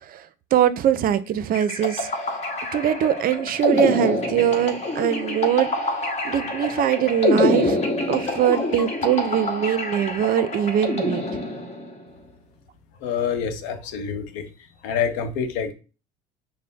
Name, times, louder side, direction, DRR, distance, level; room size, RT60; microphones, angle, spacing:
voice 1, 0.5-2.1 2.7-5.7 6.2-7.8 8.1-11.2, right 10 dB, 45° right, 14 dB, 0.5 m, -22 dB
sound 1, 1.5-12.0, left 2 dB, 35° left, 1.1 m, -26 dB
sound 2, 7.8-11.4, left 1 dB, 15° left, 0.4 m, -39 dB
voice 2, 13.0-14.5 14.8-15.7, left 7 dB, 80° left, 8 dB, 0.8 m, -26 dB
5.5 x 2.1 x 3.8 m, 0.34 s
supercardioid pair, 90°, 20 cm